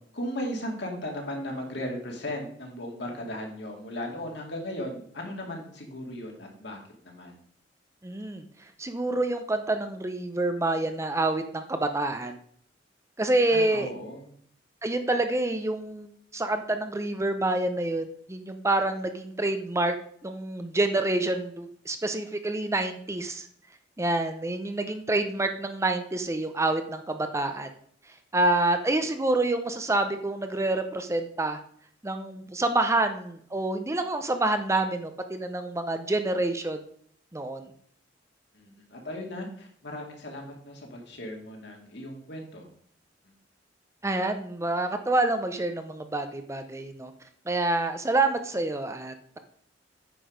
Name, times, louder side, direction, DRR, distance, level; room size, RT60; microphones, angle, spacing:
voice 1, 0.1-7.4 13.5-14.3 38.5-42.7, left 1 dB, 65° left, 1 dB, 2.4 m, -37 dB
voice 2, 8.0-8.4 8.8-12.4 13.2-13.9 14.8-19.9 20.2-23.5 24.0-27.7 28.3-31.6 32.0-36.8 37.3-37.7 44.0-47.1 47.5-49.4, right 2 dB, 15° right, 7 dB, 0.6 m, -27 dB
9.3 x 6.1 x 5.1 m, 0.62 s
head